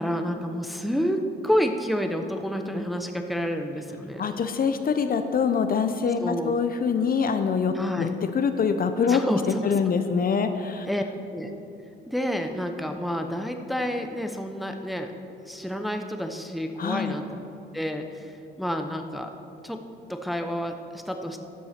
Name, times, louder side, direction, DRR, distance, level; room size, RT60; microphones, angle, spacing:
voice 1, 0.0-4.2 6.2-6.5 7.7-8.1 9.1-9.7 10.9-11.0 11.3-11.5 12.1-15.1 15.5-17.4 17.7-19.3 19.6-19.8 20.1-21.4, equal, ahead, 5 dB, 0.8 m, -29 dB
voice 2, 4.2-8.1 8.3-9.2 9.6-10.9 16.8-17.2, left 6 dB, 45° left, 8 dB, 0.7 m, -24 dB
12.0 x 6.9 x 5.9 m, 2.7 s
cardioid pair, 90°, 20 cm